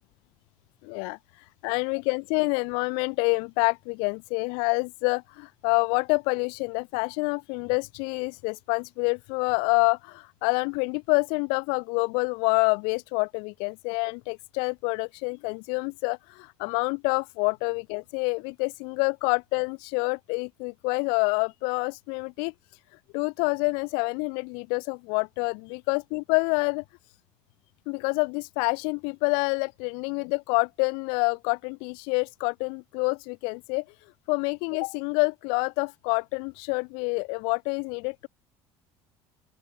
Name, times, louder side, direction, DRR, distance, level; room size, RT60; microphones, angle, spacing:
voice 1, 0.8-22.5 22.9-26.8 27.9-33.8 34.3-38.3, left 36 dB, 75° left, 1.8 m, -27 dB
open air
cardioid pair, 170°, 9 cm